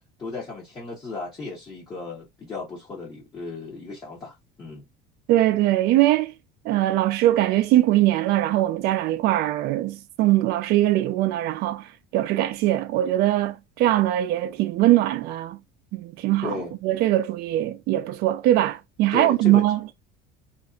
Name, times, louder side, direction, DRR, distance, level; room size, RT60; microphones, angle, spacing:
voice 1, 0.2-4.8 16.4-16.7 19.1-19.6, left 3 dB, 20° left, 0.8 m, -35 dB
voice 2, 5.3-6.3 6.6-15.6 15.9-16.6 16.8-19.9, right 14 dB, 55° right, 0.5 m, -21 dB
2.9 x 2.5 x 2.3 m
cardioid pair, 165°, 20 cm